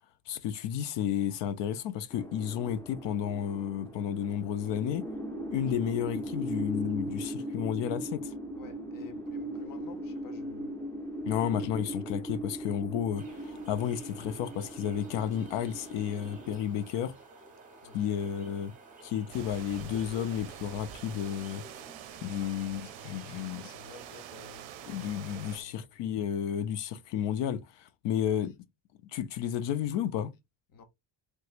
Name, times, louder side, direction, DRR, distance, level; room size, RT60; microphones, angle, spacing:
voice 1, 0.3-5.1 5.5-8.3 11.3-17.1 17.9-18.7 19.0-21.6 22.2-23.7 24.9-28.6 29.1-30.3, left 9 dB, 60° left, 0.5 m, -32 dB
sound 1, 2.1-16.6, right 1 dB, 5° left, 0.6 m, -39 dB
voice 2, 8.5-10.8 17.8-18.2 22.4-24.7 25.4-25.8 30.7-30.8, left 5 dB, 40° left, 0.9 m, -52 dB
sound 2, 13.2-25.6, right 2 dB, 15° right, 0.9 m, -52 dB
sound 3, 19.3-25.6, right 11 dB, 65° right, 0.6 m, -46 dB
3.3 x 3.1 x 2.4 m
cardioid pair, 150°, 49 cm